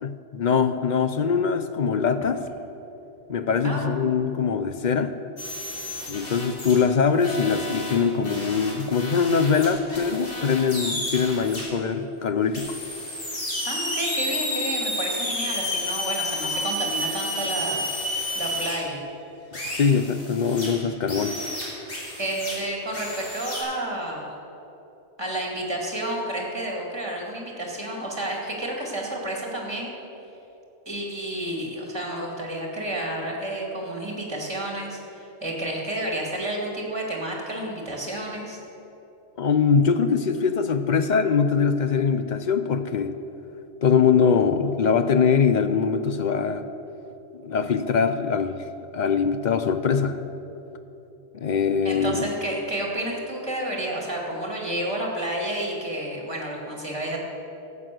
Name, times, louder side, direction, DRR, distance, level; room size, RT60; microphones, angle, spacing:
voice 1, 0.0-2.4 3.3-5.1 6.1-12.8 19.7-21.4 39.4-43.1 43.8-46.6 47.4-48.6 48.9-50.2 51.3-52.3, left 6 dB, 50° left, 10 dB, 0.6 m, -22 dB
sound 1, 5.4-6.8 7.2-11.6 12.5-18.7 19.5-20.7 21.1-22.5 22.9-23.6, left 1 dB, 80° left, 3.5 m, -31 dB
voice 2, 13.6-17.8 18.3-19.0 22.2-24.3 25.2-29.9 30.9-38.6 51.8-57.2, right 1 dB, 20° right, -1 dB, 2.4 m, -30 dB
12.5 x 8.5 x 7.7 m, 3.0 s
omnidirectional pair, 1.2 m